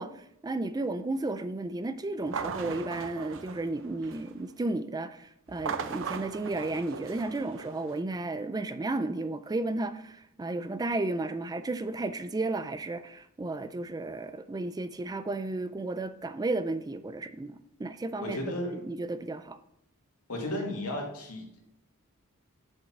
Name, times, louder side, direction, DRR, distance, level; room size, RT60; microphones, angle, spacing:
voice 1, 0.0-19.6, right 2 dB, 15° right, 0.4 m, -33 dB
sound 1, 2.2-4.4 5.5-8.0, right 6 dB, 60° right, 0.6 m, -38 dB
voice 2, 18.2-18.8 20.3-21.6, left 1 dB, 75° left, 2.2 m, -34 dB
7.1 x 5.4 x 5.8 m
head